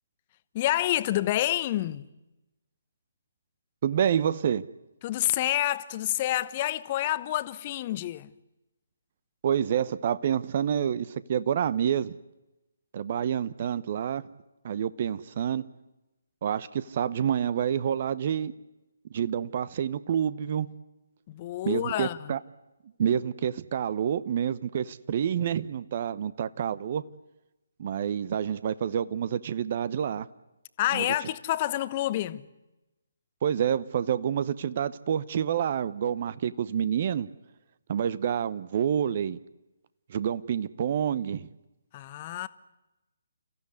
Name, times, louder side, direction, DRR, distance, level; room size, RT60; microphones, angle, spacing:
voice 1, 0.5-2.1 5.0-8.3 21.3-22.3 30.8-32.5 41.9-42.5, left 14 dB, 30° left, 1.0 m, -28 dB
voice 2, 3.8-4.6 9.4-12.1 12.9-14.2 14.6-15.6 16.4-18.5 19.1-20.7 21.6-22.4 23.0-27.0 27.8-30.3 30.9-31.1 33.4-37.3 37.9-39.4 40.1-41.5, right 8 dB, 40° right, 0.9 m, -28 dB
29.5 x 15.0 x 9.7 m
figure-of-eight pair, 140°, 0 cm